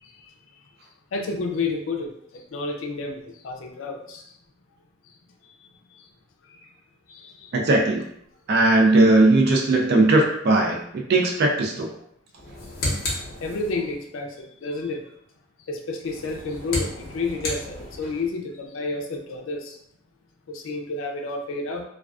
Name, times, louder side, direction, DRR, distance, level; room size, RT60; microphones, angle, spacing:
voice 1, 1.1-4.2 6.5-6.6 7.1-7.5 13.4-15.0 15.7-19.8 20.5-21.8, left 3 dB, 80° left, 2 dB, 0.4 m, -30 dB
voice 2, 7.5-8.0 8.5-11.9, right 2 dB, 50° right, 0 dB, 0.4 m, -18 dB
sound 1, 12.3-14.0 16.0-18.3, left 1 dB, 50° left, 0.7 m, -32 dB
2.3 x 2.3 x 2.3 m, 0.71 s
head